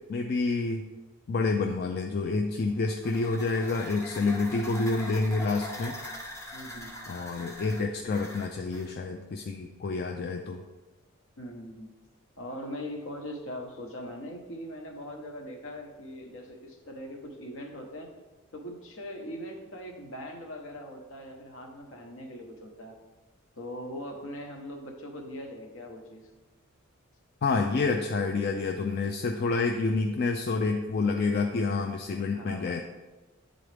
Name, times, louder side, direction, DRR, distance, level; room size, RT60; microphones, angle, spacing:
voice 1, 0.1-0.9 1.3-6.0 7.1-10.6 27.4-32.8, left 3 dB, 45° left, 4 dB, 0.3 m, -28 dB
sound 1, 2.6-8.9, left 1 dB, 15° left, 0.6 m, -42 dB
voice 2, 6.5-7.0 11.4-11.9 12.4-18.1 18.5-23.0 23.6-26.3 32.2-32.8, equal, 65° left, 2 dB, 1.0 m, -41 dB
9.8 x 3.9 x 3.3 m, 1.2 s
head